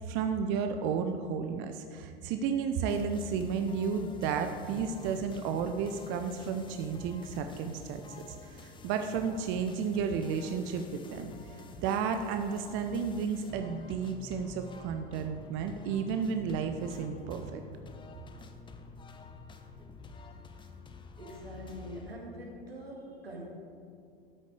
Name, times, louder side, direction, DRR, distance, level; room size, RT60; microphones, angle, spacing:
voice 1, 0.0-8.0 8.3-17.6, right 6 dB, 40° right, 7 dB, 0.6 m, -32 dB
sound 1, 2.9-22.2, left 3 dB, 15° left, 0.7 m, -49 dB
voice 2, 21.2-23.5, equal, 85° right, -1 dB, 2.1 m, -44 dB
13.0 x 6.6 x 4.8 m, 2.5 s
figure-of-eight pair, 85°, 29 cm